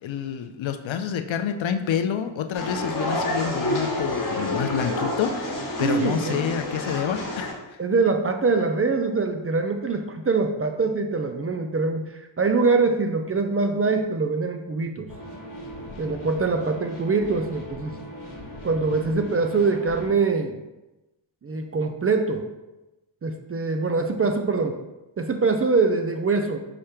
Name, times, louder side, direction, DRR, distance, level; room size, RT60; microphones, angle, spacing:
voice 1, 0.0-7.5, left 8 dB, 70° left, 8 dB, 0.5 m, -28 dB
sound 1, 2.5-7.5, left 1 dB, 40° left, 1.0 m, -28 dB
voice 2, 5.8-6.4 7.8-12.1 12.4-15.1 16.0-17.9 18.6-20.6 21.4-22.5 23.2-24.8 25.2-26.6, right 4 dB, 30° right, 5 dB, 0.4 m, -23 dB
sound 2, 15.1-20.1, equal, 90° left, 1.2 m, -39 dB
4.9 x 2.1 x 4.3 m, 1.0 s
cardioid pair, 60°, 48 cm